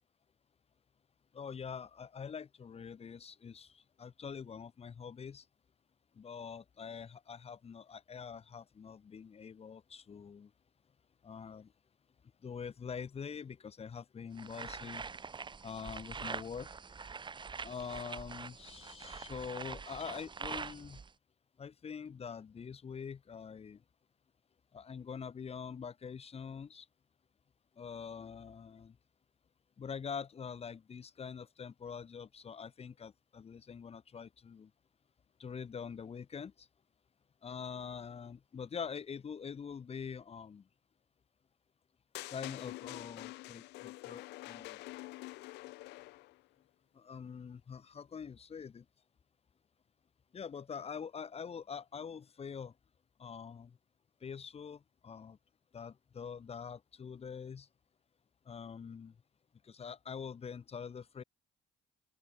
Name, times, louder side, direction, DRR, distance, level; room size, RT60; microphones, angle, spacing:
voice 1, 1.3-5.5 6.1-10.5 11.2-11.7 12.4-15.0 15.6-16.7 17.6-21.0 21.6-23.8 24.7-26.9 27.8-29.0 29.8-34.7 35.4-36.7 37.4-40.7 42.3-44.8 46.9-48.9 50.3-52.8 53.2-53.8 54.2-55.4 55.7-57.7 58.4-59.2 59.6-61.2, left 6 dB, 35° left, 8.0 m, -45 dB
sound 1, 14.4-21.1, right 5 dB, 30° right, 3.4 m, -44 dB
sound 2, 42.1-46.4, left 20 dB, 90° left, 2.5 m, -46 dB
open air
cardioid pair, 110°, 17 cm